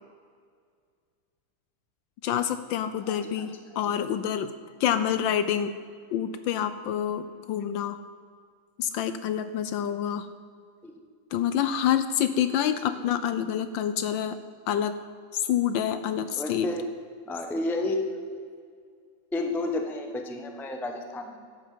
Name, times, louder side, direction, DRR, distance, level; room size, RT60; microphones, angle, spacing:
voice 1, 2.2-4.5 4.8-5.7 6.1-8.0 8.8-10.3 11.3-14.4 14.7-15.0 15.3-16.7, left 9 dB, 75° left, 11 dB, 1.2 m, -27 dB
voice 2, 3.1-3.5 10.8-10.9 12.9-13.0 16.4-16.9 17.3-18.2 19.3-21.4, left 2 dB, ahead, 4 dB, 0.5 m, -31 dB
11.5 x 8.2 x 7.5 m, 2.1 s
omnidirectional pair, 2.3 m